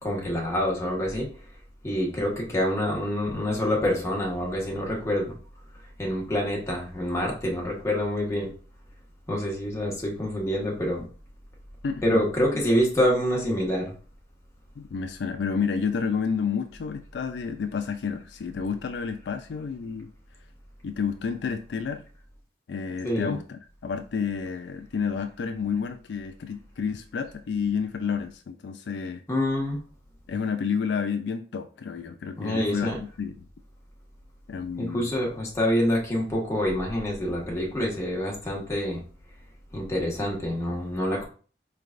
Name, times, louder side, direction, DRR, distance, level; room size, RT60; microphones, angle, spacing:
voice 1, 0.0-1.3 1.8-5.3 6.0-8.5 9.3-11.1 12.0-13.9 23.0-23.4 29.3-29.8 32.4-33.0 34.8-39.0 39.7-41.3, equal, 15° left, -3 dB, 1.3 m, -26 dB
voice 2, 11.8-12.2 14.8-20.1 20.8-22.0 22.7-29.2 30.3-32.9 33.2-33.3 34.5-35.1, left 6 dB, 75° left, 7 dB, 0.4 m, -30 dB
4.7 x 3.3 x 2.5 m, 0.39 s
head